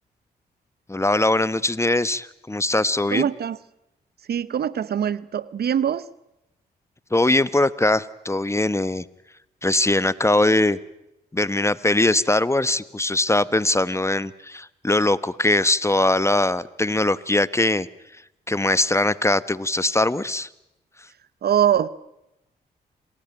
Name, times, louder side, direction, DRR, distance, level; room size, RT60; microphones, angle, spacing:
voice 1, 0.9-3.3 7.1-9.0 9.6-10.8 11.3-17.9 18.5-20.5, left 2 dB, 15° left, 17 dB, 1.1 m, -21 dB
voice 2, 3.1-3.6 4.3-6.1 21.4-21.9, right 9 dB, 60° right, 18 dB, 1.0 m, -22 dB
28.0 x 19.5 x 9.1 m, 0.89 s
supercardioid pair, 50°, 18 cm